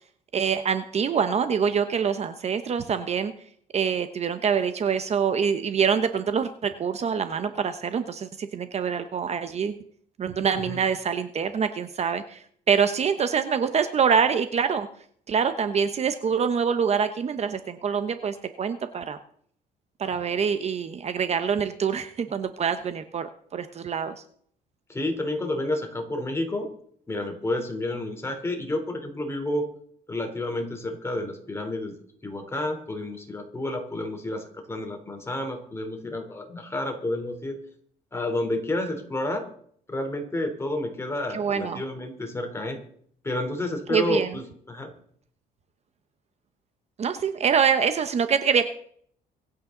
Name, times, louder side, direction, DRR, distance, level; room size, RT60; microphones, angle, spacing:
voice 1, 0.3-3.3 3.7-9.7 10.2-14.9 15.3-19.2 20.0-24.1 41.3-41.8 43.9-44.3 47.0-48.7, right 6 dB, 40° right, 10 dB, 0.9 m, -25 dB
voice 2, 24.9-26.7 27.1-29.7 30.1-31.9 32.2-37.6 38.1-39.4 39.9-42.8 43.2-44.9, left 1 dB, 15° left, 4 dB, 3.4 m, -30 dB
25.0 x 8.8 x 3.9 m, 0.62 s
cardioid pair, 110°, 17 cm